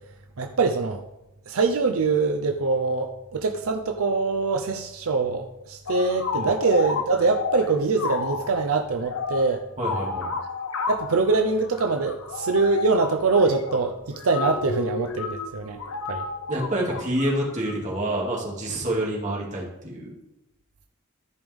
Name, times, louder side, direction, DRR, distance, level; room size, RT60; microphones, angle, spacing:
voice 1, 0.4-1.0 1.5-9.6 10.9-15.8 16.1-16.2, right 3 dB, 80° right, 5 dB, 0.6 m, -23 dB
sound 1, 5.9-17.8, left 4 dB, 75° left, 0.8 m, -32 dB
voice 2, 9.8-10.3 16.5-20.1, right 1 dB, 35° right, -3 dB, 2.4 m, -27 dB
14.0 x 5.3 x 3.6 m, 0.97 s
head